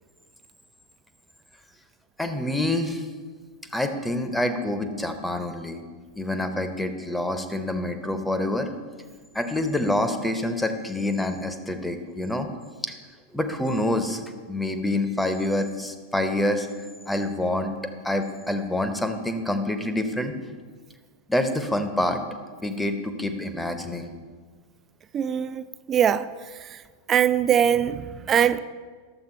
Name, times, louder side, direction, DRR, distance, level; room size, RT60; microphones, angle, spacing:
voice 1, 2.2-3.1 3.7-5.8 6.2-8.7 9.3-12.5 12.8-12.9 13.3-14.2 14.5-16.7 17.1-17.7 18.0-20.3 21.3-22.2 22.6-24.1, left 1 dB, 5° left, 7 dB, 0.8 m, -26 dB
voice 2, 25.1-26.3 26.6-26.8 27.1-28.6, right 9 dB, 25° right, 14 dB, 0.4 m, -22 dB
11.0 x 7.3 x 4.4 m, 1.6 s
figure-of-eight pair, 90°, 0 cm